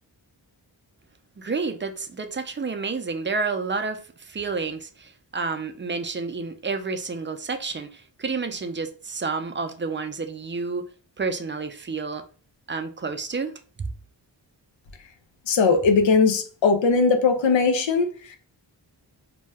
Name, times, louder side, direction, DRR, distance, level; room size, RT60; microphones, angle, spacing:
voice 1, 1.4-10.9 11.2-12.2 12.7-13.5, right 4 dB, 25° right, 0.4 m, -30 dB
voice 2, 15.5-18.4, left 4 dB, 85° left, 0.6 m, -20 dB
2.7 x 2.2 x 3.3 m
cardioid pair, 50°, 44 cm